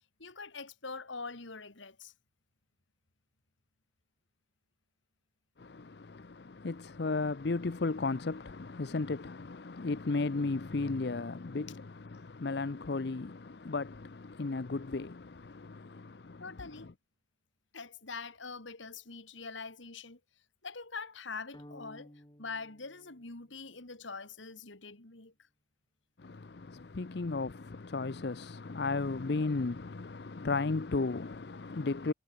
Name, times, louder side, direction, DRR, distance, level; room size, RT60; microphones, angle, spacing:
voice 1, 0.2-2.1 16.4-16.9 17.7-20.2 20.6-22.1 22.4-25.3 31.5-31.6, left 4 dB, 80° left, 2.5 m, -44 dB
voice 2, 5.6-16.9 26.2-32.1, left 3 dB, 55° left, 0.6 m, -35 dB
sound 1, 21.5-23.8, equal, 20° left, 5.2 m, -55 dB
head